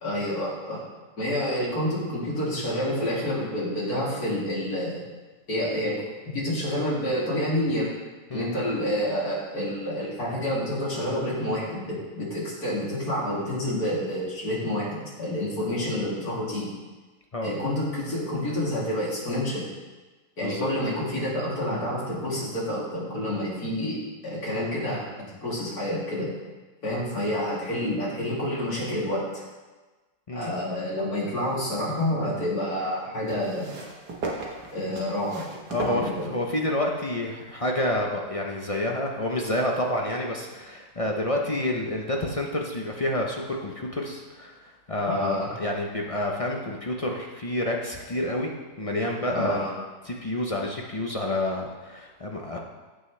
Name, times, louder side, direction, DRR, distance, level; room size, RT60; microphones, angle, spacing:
voice 1, 0.0-0.8 1.2-5.0 5.5-6.0 6.3-7.9 8.3-16.7 17.4-19.7 20.4-24.0 24.2-25.0 25.3-26.3 26.8-29.2 30.3-33.7 34.7-35.4 35.8-36.3 45.1-45.5 49.3-49.7, left 1 dB, 70° left, -7 dB, 3.5 m, -28 dB
sound 1, 31.3-32.1 33.3-36.7 37.6-37.7, right 3 dB, 85° right, 1.9 m, -37 dB
voice 2, 35.7-48.5 48.8-49.6 50.0-52.6, left 1 dB, 35° left, 0 dB, 0.5 m, -29 dB
15.0 x 6.0 x 3.3 m, 1.3 s
omnidirectional pair, 1.7 m